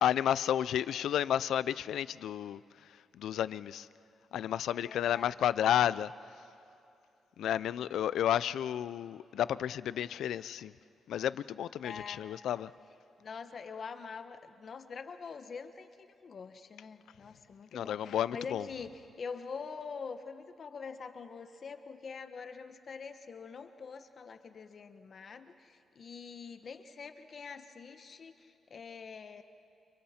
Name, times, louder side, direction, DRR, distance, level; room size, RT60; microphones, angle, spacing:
voice 1, 0.0-3.9 4.3-6.1 7.4-10.7 11.1-12.7 17.7-18.7, left 10 dB, 85° left, 0.4 m, -31 dB
voice 2, 4.7-5.3 11.8-12.2 13.2-15.9 16.2-29.4, left 5 dB, 50° left, 1.1 m, -45 dB
29.5 x 28.0 x 4.3 m
cardioid pair, 100°, 0 cm